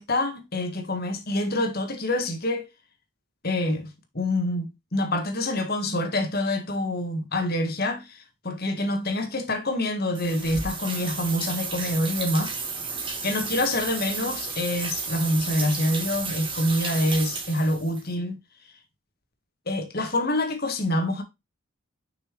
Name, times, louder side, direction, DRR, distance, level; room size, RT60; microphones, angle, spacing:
voice 1, 0.0-2.7 3.4-12.7 13.2-18.4 19.7-21.2, left 1 dB, 45° left, 1.8 m, -26 dB
sound 1, 10.1-18.0, right 4 dB, 25° right, 1.9 m, -32 dB
6.4 x 6.0 x 3.3 m
head